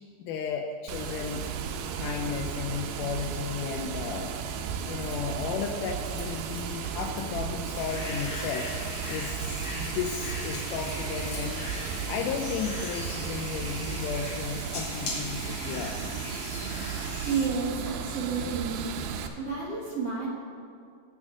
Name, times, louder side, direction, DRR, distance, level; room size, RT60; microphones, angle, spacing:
voice 1, 0.2-1.5 2.0-8.7 9.1-16.0, left 6 dB, 85° left, 3 dB, 1.8 m, -34 dB
Water, 0.9-19.3, right 7 dB, 90° right, 2.6 m, -35 dB
Keys jangling, 5.0-13.1, left 1 dB, 20° left, 2.7 m, -51 dB
sound 1, 7.7-17.5, left 2 dB, 50° left, 2.6 m, -39 dB
voice 2, 17.2-18.9 19.4-20.3, right 5 dB, 55° right, -5 dB, 1.9 m, -31 dB
17.0 x 6.2 x 3.7 m, 2.3 s
omnidirectional pair, 4.3 m